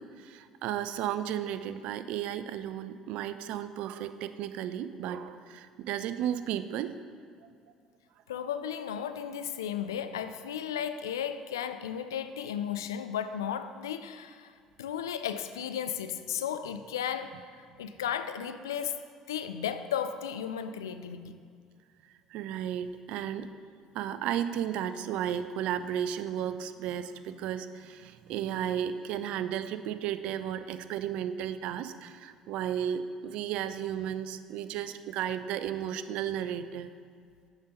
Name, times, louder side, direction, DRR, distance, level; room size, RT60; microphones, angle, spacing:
voice 1, 0.0-6.9 22.3-23.5 23.9-36.9, right 10 dB, 60° right, 12 dB, 0.3 m, -34 dB
voice 2, 8.3-14.5 14.8-19.0 19.3-21.4, left 8 dB, 80° left, 10 dB, 0.3 m, -34 dB
7.1 x 5.1 x 5.2 m, 2.1 s
figure-of-eight pair, 55°, 2 cm